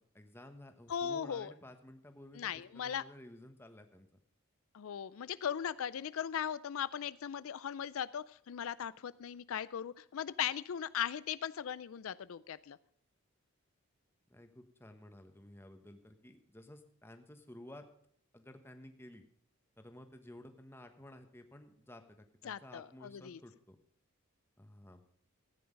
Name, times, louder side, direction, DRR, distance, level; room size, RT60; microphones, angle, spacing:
voice 1, 0.1-4.1 14.3-17.8 18.3-19.2 19.8-23.8 24.6-25.0, left 1 dB, 10° left, 6 dB, 1.2 m, -54 dB
voice 2, 0.9-1.5 2.4-3.0 4.7-12.8 22.4-23.4, left 8 dB, 75° left, 17 dB, 0.4 m, -38 dB
15.0 x 9.5 x 5.2 m, 0.68 s
head